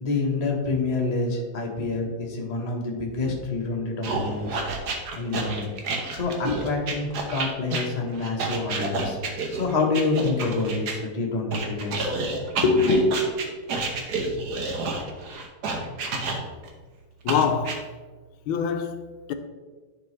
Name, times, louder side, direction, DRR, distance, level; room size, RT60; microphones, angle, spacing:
voice 1, 0.0-4.6 5.2-5.7 6.1-9.2 9.5-12.1 12.6-13.2, left 3 dB, 25° left, 1.0 m, -26 dB
sound 1, 4.0-11.0 11.5-16.7 17.3-17.8, right 3 dB, 60° right, 1.4 m, -29 dB
voice 2, 17.2-17.9 18.5-19.3, left 7 dB, 85° left, 1.4 m, -25 dB
10.5 x 5.0 x 3.3 m
omnidirectional pair, 2.2 m